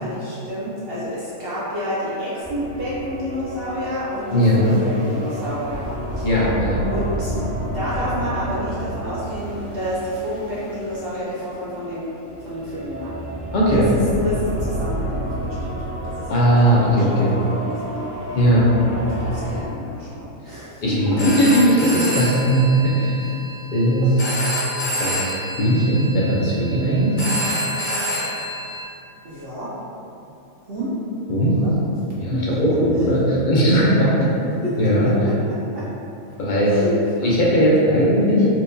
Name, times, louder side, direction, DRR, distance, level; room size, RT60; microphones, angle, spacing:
voice 1, 0.0-6.3 6.9-7.5 7.7-12.1 12.4-13.2 13.7-13.8 14.2-15.7 16.0-17.2 17.5-18.0 19.0-21.4 24.0-24.1 24.5-24.6 29.2-29.7 30.6-31.0 31.5-31.8 32.1-32.6 32.9-33.1 33.9-35.9 36.3-36.4 36.6-37.0, equal, 60° right, -8 dB, 0.6 m, -30 dB
sound 1, 2.4-19.6, right 1 dB, 80° right, 1.5 m, -30 dB
voice 2, 4.3-4.7 6.2-6.8 13.5-13.9 16.3-17.4 18.3-18.7 20.8-23.2 23.7-24.1 25.0-25.3 25.6-27.2 31.3-31.6 32.2-34.1 34.8-35.1 36.4-36.8 37.2-38.5, equal, 60° left, -6 dB, 0.5 m, -18 dB
Telephone, 21.0-28.8, equal, 40° left, 0.8 m, -28 dB
4.4 x 2.2 x 2.6 m, 2.7 s
omnidirectional pair, 1.5 m